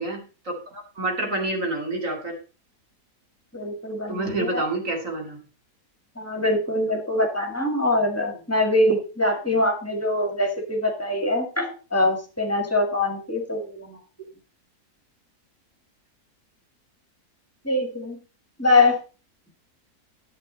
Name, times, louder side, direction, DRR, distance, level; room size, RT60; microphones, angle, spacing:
voice 1, 0.0-2.3 4.1-5.4, right 2 dB, 55° right, 1 dB, 2.9 m, -28 dB
voice 2, 3.5-4.6 6.2-14.0 17.6-18.2 18.6-19.0, left 2 dB, 10° left, 3 dB, 1.8 m, -23 dB
10.5 x 8.4 x 4.0 m, 0.34 s
omnidirectional pair, 1.6 m